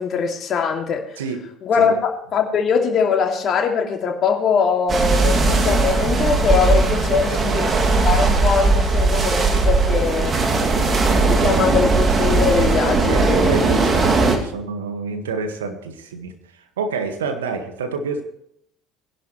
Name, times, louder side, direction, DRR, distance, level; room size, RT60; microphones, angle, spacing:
voice 1, 0.0-1.0 1.6-7.7 8.0-10.4 11.2-13.5, left 6 dB, 45° left, 2 dB, 2.5 m, -21 dB
sound 1, 4.9-14.4, right 3 dB, 35° right, 2.4 m, -18 dB
voice 2, 7.1-7.6 13.1-16.3 16.8-18.2, right 4 dB, 80° right, 6 dB, 1.6 m, -28 dB
20.5 x 11.0 x 3.2 m, 0.72 s
hypercardioid pair, 60°, 0 cm